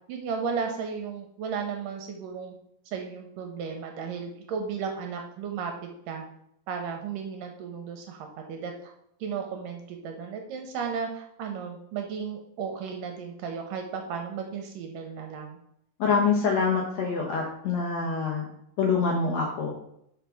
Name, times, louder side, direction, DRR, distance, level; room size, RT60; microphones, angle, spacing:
voice 1, 0.1-2.5 2.9-5.7 6.1-6.3 6.7-8.9 9.2-15.6, right 6 dB, 75° right, 3 dB, 2.2 m, -34 dB
voice 2, 16.0-18.5 18.8-19.7, left 5 dB, 70° left, -1 dB, 1.6 m, -25 dB
5.8 x 4.9 x 5.7 m, 0.74 s
omnidirectional pair, 4.5 m